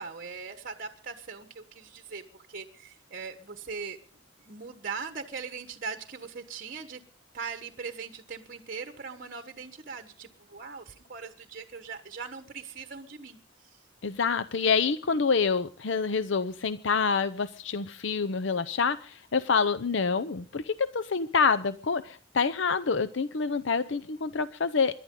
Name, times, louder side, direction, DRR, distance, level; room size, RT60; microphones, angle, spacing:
voice 1, 0.0-4.0 4.4-7.0 7.3-13.4 13.6-13.8, right 5 dB, 45° right, 7 dB, 1.3 m, -40 dB
voice 2, 14.0-25.0, left 5 dB, 70° left, 13 dB, 0.7 m, -27 dB
27.0 x 11.5 x 3.8 m, 0.36 s
head